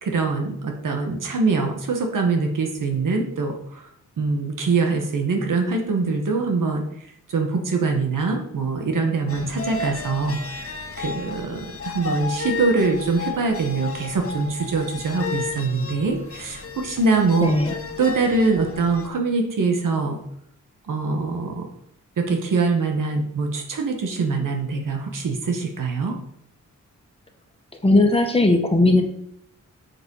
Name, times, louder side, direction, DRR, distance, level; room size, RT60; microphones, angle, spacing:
voice 1, 0.0-3.9 4.2-6.8 7.3-10.7 11.0-17.5 18.0-20.2 20.9-21.7 22.2-26.2, right 4 dB, 80° right, 3 dB, 1.8 m, -23 dB
sound 1, 9.3-19.1, left 4 dB, 45° left, 1.4 m, -33 dB
voice 2, 17.4-17.7 27.8-29.0, left 2 dB, 20° left, 4 dB, 1.5 m, -17 dB
7.9 x 7.6 x 5.6 m, 0.73 s
wide cardioid pair, 135°, 31 cm